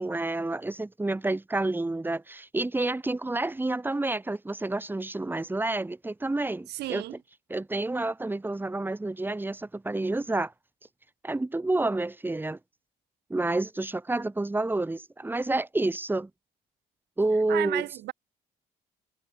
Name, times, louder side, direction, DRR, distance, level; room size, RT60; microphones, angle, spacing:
voice 1, 0.0-7.0 7.5-10.5 11.2-12.6 13.3-16.3 17.2-17.9, right 2 dB, 10° right, 4.3 m, -29 dB
voice 2, 6.7-7.2 17.5-18.1, right 16 dB, 80° right, 4.6 m, -32 dB
cardioid pair, 110°, 17 cm